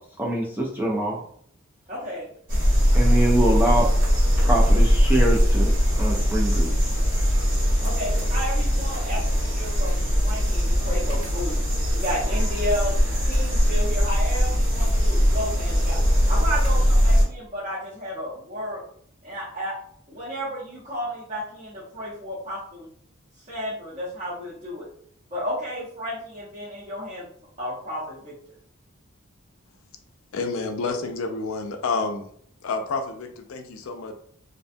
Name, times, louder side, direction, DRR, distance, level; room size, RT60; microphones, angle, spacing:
voice 1, 0.2-1.2 2.9-3.9 4.4-6.8, right 1 dB, 10° right, -2 dB, 0.3 m, -24 dB
voice 2, 1.9-2.2 2.9-3.1 7.8-11.6 11.9-16.0 16.3-18.8 19.2-19.7 20.1-22.9 23.4-24.9 25.3-27.3 27.6-28.3, equal, 30° right, -10 dB, 0.7 m, -32 dB
sound 1, 2.5-17.2, equal, 70° right, 1.3 m, -20 dB
voice 3, 30.3-32.3 32.6-34.1, left 4 dB, 75° left, 6 dB, 0.4 m, -29 dB
2.5 x 2.2 x 2.5 m, 0.62 s
head